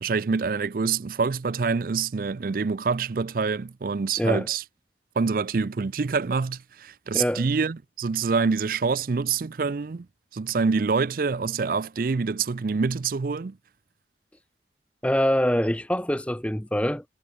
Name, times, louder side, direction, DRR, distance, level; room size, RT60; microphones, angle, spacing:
voice 1, 0.0-4.6 5.2-10.1 10.3-13.6, right 5 dB, 50° right, 0.4 m, -26 dB
voice 2, 7.1-7.5 15.0-17.0, equal, 5° left, 1.0 m, -24 dB
head